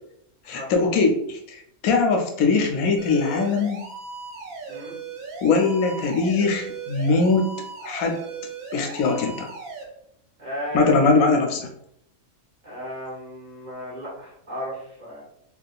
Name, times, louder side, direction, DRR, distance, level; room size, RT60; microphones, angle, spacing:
voice 1, 0.5-3.9 5.4-7.5 7.8-8.2 8.7-9.5 10.7-11.7, left 4 dB, 75° left, 3 dB, 1.0 m, -21 dB
sound 1, 3.0-9.8, right 4 dB, 75° right, 1.2 m, -37 dB
voice 2, 10.4-11.0 12.6-15.2, equal, 35° right, -6 dB, 1.0 m, -34 dB
3.5 x 2.7 x 2.3 m, 0.73 s
omnidirectional pair, 1.5 m